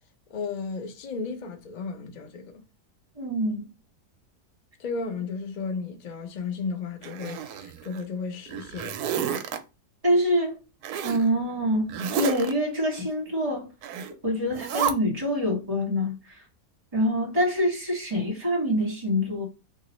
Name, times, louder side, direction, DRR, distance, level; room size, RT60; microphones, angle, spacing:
voice 1, 0.3-2.5 4.8-8.9, left 4 dB, 85° left, 0.4 m, -34 dB
voice 2, 3.2-3.7 10.0-10.6 11.0-13.7 14.2-16.4 16.9-19.5, equal, 25° right, 1.4 m, -25 dB
Zipper (clothing), 7.0-8.0 8.5-9.6 10.8-11.2 11.9-12.5 13.8-14.1 14.5-14.9, right 8 dB, 75° right, 1.1 m, -30 dB
2.9 x 2.8 x 2.9 m
omnidirectional pair, 1.7 m